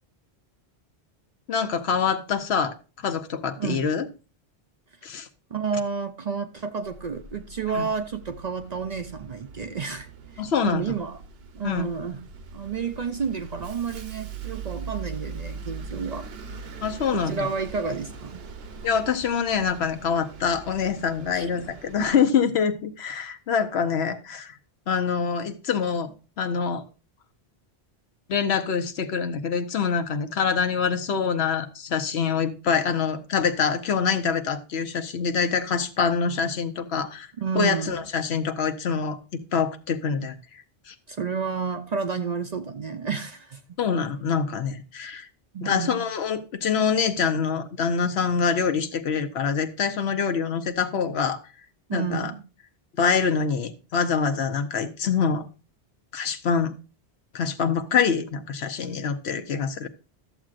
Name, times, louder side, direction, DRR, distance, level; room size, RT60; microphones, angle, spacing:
voice 1, 1.5-4.1 5.0-5.3 7.7-7.9 10.4-10.9 11.6-11.9 16.8-17.5 18.8-24.6 24.9-26.1 26.4-26.8 28.3-37.3 37.5-39.2 39.5-40.4 40.9-41.0 43.8-45.3 45.6-51.4 51.9-52.3 53.0-55.5 56.1-56.7 57.3-59.9, left 6 dB, 75° left, 1.1 m, -25 dB
voice 2, 5.5-10.1 10.3-11.2 11.5-12.2 12.5-16.3 17.1-18.4 21.3-21.5 37.4-38.0 41.1-43.8 45.5-46.1 51.9-52.4, right 5 dB, 50° right, 0.6 m, -30 dB
Bus, 6.8-22.1, right 5 dB, 70° right, 1.0 m, -41 dB
13.0 x 7.5 x 2.5 m
omnidirectional pair, 1.1 m